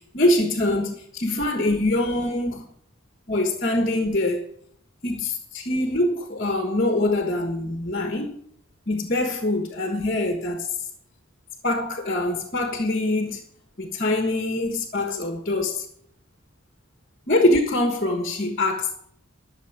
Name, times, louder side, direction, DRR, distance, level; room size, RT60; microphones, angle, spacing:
voice 1, 0.1-2.6 3.3-4.4 5.0-8.4 8.9-10.7 11.6-13.4 13.8-15.8 17.3-18.9, left 1 dB, 40° left, 1.4 m, -24 dB
12.5 x 6.9 x 9.4 m
head